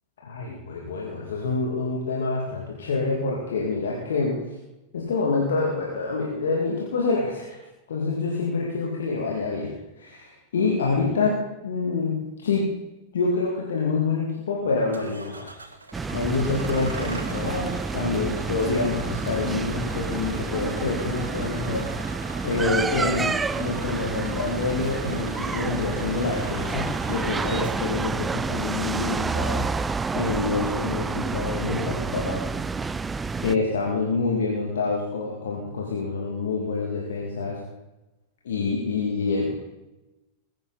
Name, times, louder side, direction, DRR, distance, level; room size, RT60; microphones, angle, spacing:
voice 1, 0.2-4.4 4.9-7.6 7.9-9.7 10.0-12.7 13.1-15.5 16.1-22.1 22.4-32.5 33.4-37.6 38.4-39.5, left 3 dB, 65° left, -2 dB, 2.5 m, -27 dB
Bus / Engine starting, 14.9-31.1, right 3 dB, 75° right, 1.4 m, -42 dB
sound 1, 15.9-33.6, right 4 dB, 15° right, 0.4 m, -29 dB
21.0 x 10.5 x 4.2 m, 1.0 s
figure-of-eight pair, 90°, 0 cm